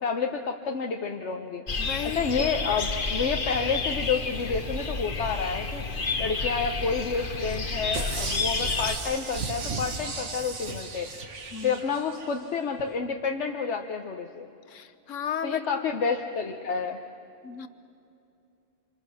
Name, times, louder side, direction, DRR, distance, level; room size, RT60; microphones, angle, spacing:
voice 1, 0.0-1.6 2.1-5.8 6.2-11.1 11.6-14.5 15.4-17.0, left 5 dB, 65° left, 3 dB, 1.2 m, -29 dB
sound 1, 1.7-9.0, left 3 dB, 45° left, 1.4 m, -30 dB
voice 2, 1.8-2.5 11.5-11.8 14.7-15.6 17.4-17.7, left 8 dB, 80° left, 12 dB, 1.3 m, -34 dB
sound 2, 7.9-12.4 12.8-12.9, right 4 dB, 70° right, 1.8 m, -35 dB
27.5 x 26.5 x 6.4 m, 2.6 s
omnidirectional pair, 1.3 m